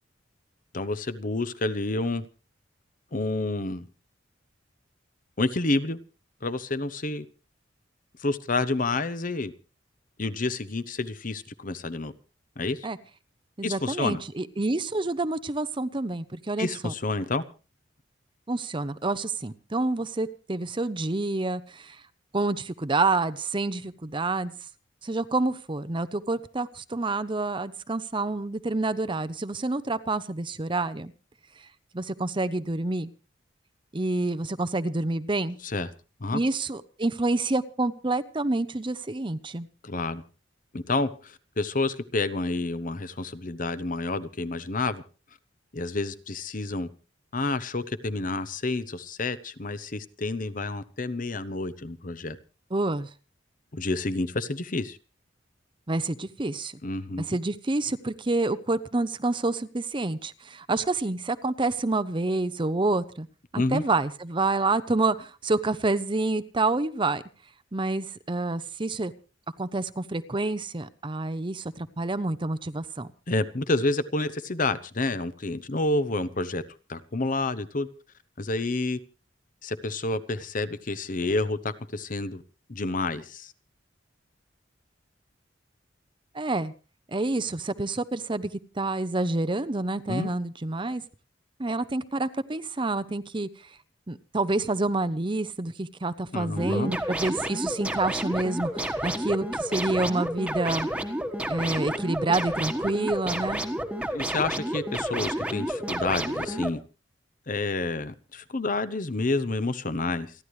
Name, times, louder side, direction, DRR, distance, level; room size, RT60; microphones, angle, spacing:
voice 1, 0.7-2.3 3.1-3.9 5.4-6.0 6.4-7.2 8.2-9.5 10.2-12.1 12.6-12.9 13.6-14.2 16.6-17.4 35.6-35.9 36.2-36.4 39.8-40.2 40.7-45.0 45.7-46.9 47.3-52.4 53.7-55.0 56.8-57.4 63.6-63.8 73.3-76.6 76.9-77.9 78.4-79.0 79.6-82.4 82.7-83.5 90.1-90.3 96.3-96.9 104.1-106.8 107.5-110.3, left 2 dB, 45° left, 13 dB, 0.9 m, -29 dB
voice 2, 13.6-16.9 18.5-22.0 22.3-24.5 25.0-31.1 31.9-33.1 33.9-35.6 36.3-39.7 52.7-53.1 55.9-56.7 57.2-63.3 63.5-67.2 67.7-69.1 69.6-73.1 86.3-86.7 87.1-88.5 88.8-91.0 91.6-93.5 94.1-100.9 101.5-103.6, right 2 dB, 25° right, 13 dB, 0.7 m, -28 dB
sound 1, 96.6-106.7, right 1 dB, 5° right, 1.4 m, -30 dB
29.0 x 11.5 x 3.2 m, 0.34 s
head